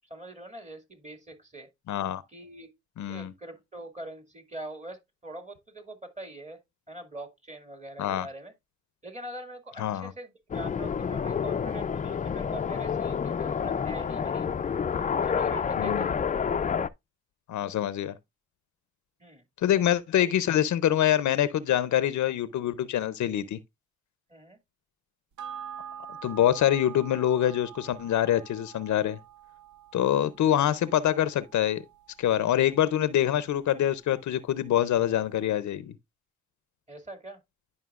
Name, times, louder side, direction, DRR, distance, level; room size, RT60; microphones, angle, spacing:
voice 1, 0.1-1.7 2.3-2.7 3.1-6.6 6.9-8.5 9.0-14.5 15.2-16.3 19.2-19.4 20.2-20.3 24.3-24.6 36.9-37.4, right 1 dB, 25° right, 2.1 m, -43 dB
voice 2, 1.9-2.2 3.0-3.3 8.0-8.3 9.8-10.1 15.8-16.1 17.5-18.1 19.6-23.6 26.2-29.2 29.9-31.8 32.2-35.9, left 11 dB, 80° left, 0.5 m, -25 dB
sound 1, 10.5-16.9, left 7 dB, 30° left, 0.3 m, -29 dB
sound 2, 25.4-34.1 34.5-34.6, right 9 dB, 85° right, 0.7 m, -46 dB
11.0 x 5.4 x 2.4 m
cardioid pair, 75°, 29 cm